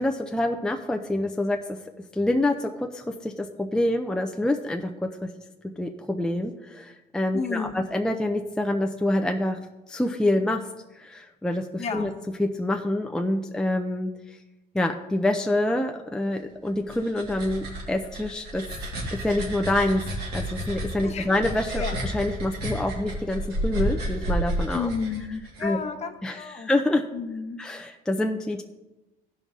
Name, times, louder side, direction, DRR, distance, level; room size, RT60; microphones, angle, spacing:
voice 1, 0.0-1.8 2.1-5.3 5.8-9.6 9.9-10.6 10.9-12.1 12.4-14.4 14.7-18.6 19.2-20.0 20.3-24.9 25.6-25.8 26.2-27.1 27.6-28.6, left 1 dB, 5° left, 3 dB, 0.5 m, -26 dB
voice 2, 7.3-7.8 11.8-12.1 21.0-21.3 21.8-22.0 24.7-26.7 27.1-27.6, left 5 dB, 40° left, 5 dB, 1.0 m, -32 dB
sound 1, 16.7-25.6, equal, 75° right, 2.5 m, -31 dB
14.5 x 5.4 x 3.6 m, 1.1 s
cardioid pair, 110°, 17 cm